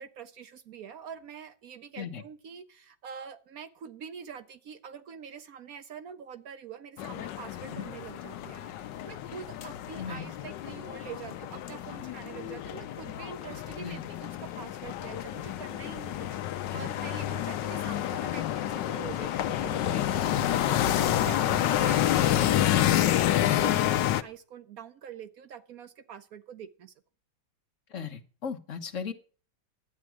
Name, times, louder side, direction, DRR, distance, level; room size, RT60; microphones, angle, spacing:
voice 1, 0.0-26.9, right 7 dB, 65° right, 11 dB, 1.0 m, -45 dB
sound 1, 7.0-24.2, left 12 dB, 75° left, 1.3 m, -29 dB
voice 2, 10.0-10.3 13.8-14.1 16.7-16.9 19.8-20.5 27.9-29.1, left 6 dB, 45° left, 4 dB, 1.5 m, -38 dB
11.5 x 8.6 x 6.1 m, 0.41 s
omnidirectional pair, 2.0 m